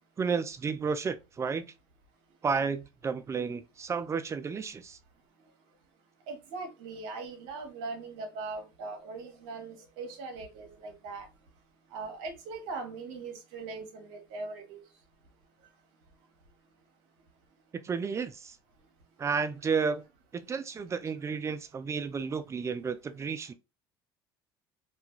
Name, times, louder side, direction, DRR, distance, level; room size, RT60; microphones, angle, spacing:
voice 1, 0.2-1.7 2.4-5.0 17.7-18.6 19.2-20.0 20.3-23.5, right 5 dB, 25° right, 0.4 m, -32 dB
voice 2, 6.3-11.3 11.9-14.8, right 3 dB, 75° right, 0.9 m, -40 dB
2.4 x 2.2 x 2.9 m
hypercardioid pair, 75°, 11 cm